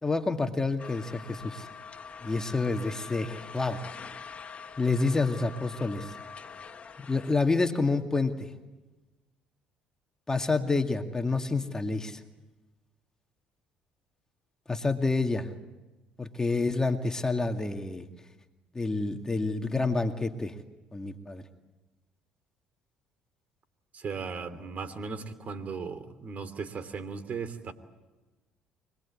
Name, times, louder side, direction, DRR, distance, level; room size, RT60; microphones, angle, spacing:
voice 1, 0.0-1.7 2.2-3.8 4.8-6.1 7.0-8.5 10.3-12.2 14.7-15.5 16.2-18.1 18.7-20.6 20.9-21.4, left 3 dB, 20° left, 5 dB, 2.2 m, -28 dB
sound 1, 0.8-7.3, left 5 dB, 40° left, 1.8 m, -44 dB
voice 2, 23.9-27.7, right 5 dB, 45° right, 11 dB, 3.1 m, -37 dB
25.5 x 21.0 x 8.6 m, 1.1 s
supercardioid pair, 70°, 3 cm